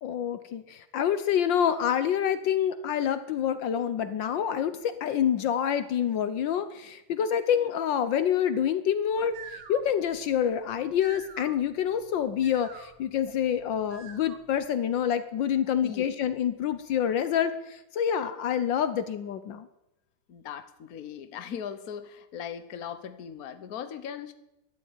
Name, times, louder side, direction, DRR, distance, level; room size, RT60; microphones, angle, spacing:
voice 1, 0.0-19.7, left 9 dB, 75° left, 12 dB, 1.5 m, -27 dB
sound 1, 9.1-14.7, right 6 dB, 80° right, 2.3 m, -48 dB
voice 2, 20.3-24.3, left 8 dB, 55° left, 11 dB, 1.4 m, -39 dB
13.5 x 11.0 x 9.0 m, 0.90 s
omnidirectional pair, 2.1 m